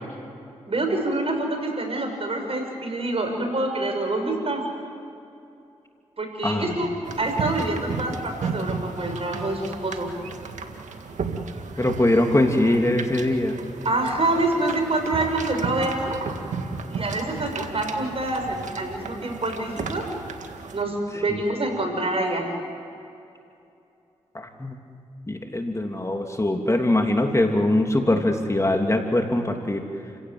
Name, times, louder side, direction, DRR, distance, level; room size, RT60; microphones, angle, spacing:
voice 1, 0.7-4.6 6.2-10.1 13.8-16.2 16.9-20.0 20.7-22.5, right 2 dB, 50° right, 4 dB, 6.5 m, -26 dB
voice 2, 6.4-7.0 11.8-13.6 21.1-21.4 24.3-24.8 25.3-29.8, left 1 dB, 25° left, 3 dB, 3.0 m, -22 dB
sound 1, 7.0-20.8, right 4 dB, 75° right, 2.0 m, -34 dB
29.5 x 17.0 x 8.0 m, 2.6 s
supercardioid pair, 40°, 12 cm